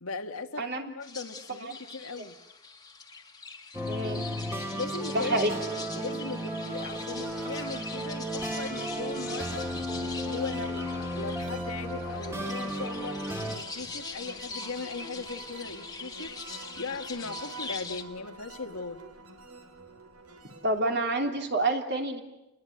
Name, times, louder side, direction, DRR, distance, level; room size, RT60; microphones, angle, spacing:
voice 1, 0.0-2.4 4.7-5.4 5.9-9.7 10.3-13.2 13.5-16.4 16.8-19.0, left 4 dB, 75° left, 6 dB, 1.8 m, -38 dB
voice 2, 0.6-0.9 1.6-1.7 2.2-2.3 3.9-4.3 5.1-5.5 20.6-22.2, right 2 dB, 50° right, 4 dB, 3.1 m, -28 dB
sound 1, 1.0-18.0, left 4 dB, 20° left, 1.8 m, -43 dB
sound 2, 3.7-13.6, equal, 10° right, 2.5 m, -34 dB
sound 3, 6.8-20.8, right 3 dB, 85° right, 3.2 m, -46 dB
29.5 x 21.0 x 9.2 m, 0.93 s
head